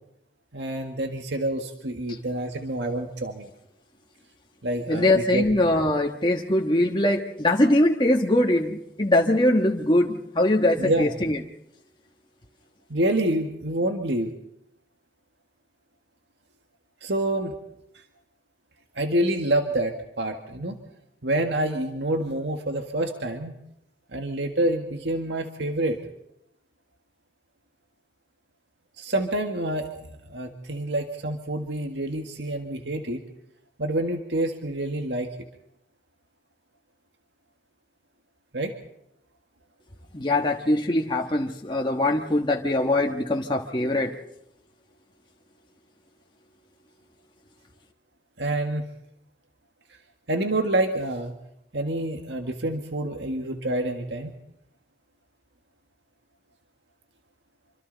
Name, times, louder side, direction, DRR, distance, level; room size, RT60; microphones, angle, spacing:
voice 1, 0.5-3.5 4.6-5.5 10.8-11.1 12.9-14.3 17.0-17.5 19.0-20.8 21.2-23.5 24.1-26.0 29.0-33.2 33.8-35.3 38.5-38.7 48.4-48.9 50.3-51.3 51.7-54.3, right 1 dB, 85° right, 4 dB, 1.8 m, -27 dB
voice 2, 4.9-11.4 40.1-44.1, left 1 dB, 25° left, 1 dB, 1.4 m, -22 dB
27.0 x 25.0 x 4.1 m, 0.79 s
head